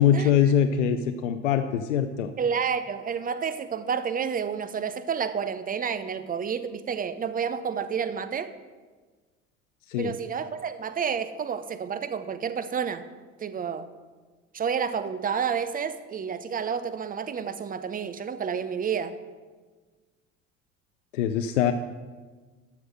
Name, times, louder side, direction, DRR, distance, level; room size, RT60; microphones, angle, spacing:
voice 1, 0.0-2.3 9.9-10.1 21.1-21.7, left 9 dB, 70° left, 8 dB, 0.6 m, -23 dB
voice 2, 2.4-8.5 10.0-13.1 13.4-13.9 14.5-19.1, right 7 dB, 20° right, 12 dB, 0.7 m, -30 dB
12.5 x 5.9 x 6.5 m, 1.4 s
figure-of-eight pair, 60°, 38 cm